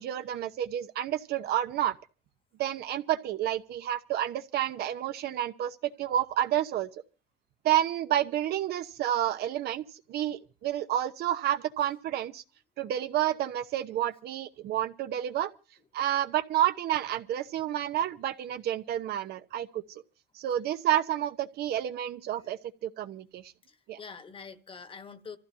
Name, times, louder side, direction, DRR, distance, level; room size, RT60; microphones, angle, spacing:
voice 1, 0.0-2.0 2.6-6.9 7.6-12.4 12.8-15.5 15.9-19.8 20.3-23.5 23.9-24.0, right 12 dB, 70° right, 1.0 m, -30 dB
voice 2, 23.7-25.4, left 5 dB, 30° left, 1.2 m, -46 dB
26.5 x 14.5 x 2.8 m
cardioid pair, 110°, 17 cm